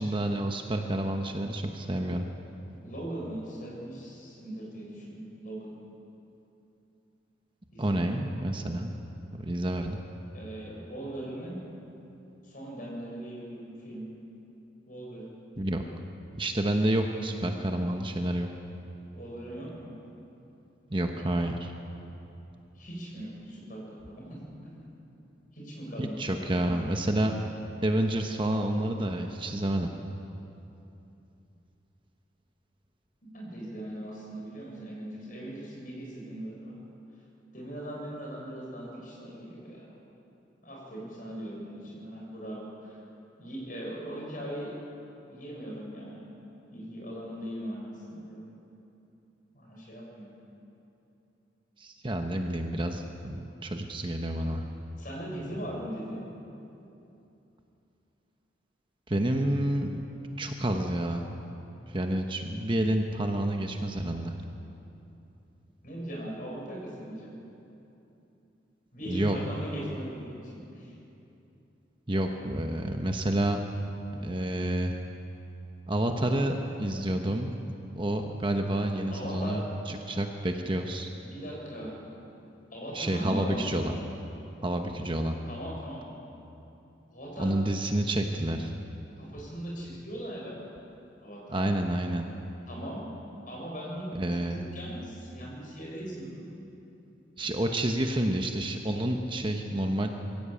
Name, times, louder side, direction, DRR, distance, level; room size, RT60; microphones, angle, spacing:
voice 1, 0.0-2.3 7.8-8.9 9.3-10.0 15.6-15.8 16.3-18.5 20.9-21.7 26.0-27.3 27.8-29.9 51.8-54.7 59.1-60.0 60.4-61.3 61.9-64.4 69.1-69.4 72.1-73.6 74.1-75.0 75.9-77.6 78.0-81.1 82.9-83.9 84.6-85.4 87.4-88.7 91.5-92.3 94.1-94.6 97.4-100.1, right 1 dB, 25° right, 4 dB, 1.0 m, -29 dB
voice 2, 2.8-5.8 7.7-8.2 10.3-11.6 12.4-14.1 14.9-15.3 19.1-19.9 22.7-24.9 25.5-26.5 33.3-36.8 37.5-39.9 40.6-43.0 43.4-44.7 45.3-46.3 46.7-48.6 49.5-50.3 55.0-56.2 65.8-67.3 68.9-70.9 79.1-79.7 81.2-82.0 82.7-83.8 85.5-86.1 87.1-87.5 89.2-90.7 91.2-91.6 92.7-93.0 93.5-94.0 94.4-96.5, right 1 dB, 45° left, -3 dB, 6.9 m, -39 dB
22.0 x 16.0 x 8.5 m, 2.9 s
head